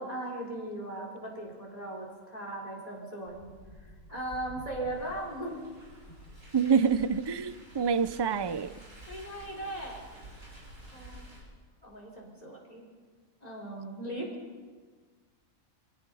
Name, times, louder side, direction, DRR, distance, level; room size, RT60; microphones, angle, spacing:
voice 1, 0.0-5.6 9.1-10.0 10.9-11.3 11.8-12.8 13.4-14.4, right 1 dB, 25° left, -1 dB, 5.2 m, -38 dB
Car, 3.3-11.4, equal, 70° right, 7.4 m, -50 dB
voice 2, 6.5-8.7, right 6 dB, 40° right, 13 dB, 0.3 m, -26 dB
27.0 x 17.0 x 5.6 m, 1.5 s
omnidirectional pair, 1.5 m